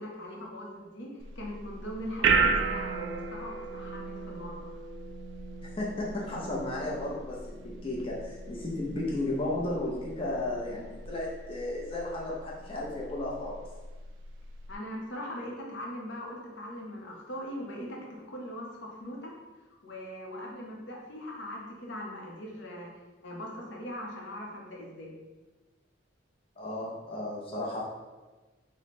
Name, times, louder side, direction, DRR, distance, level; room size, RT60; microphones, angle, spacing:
voice 1, 0.0-4.7 14.7-19.4 19.8-22.9 23.2-25.2, equal, 70° left, -2 dB, 0.7 m, -40 dB
sound 1, 1.2-14.7, right 5 dB, 70° right, 0.3 m, -34 dB
voice 2, 5.6-13.6 26.6-27.8, left 2 dB, 30° left, -4 dB, 0.6 m, -34 dB
3.1 x 2.1 x 4.1 m, 1.2 s
head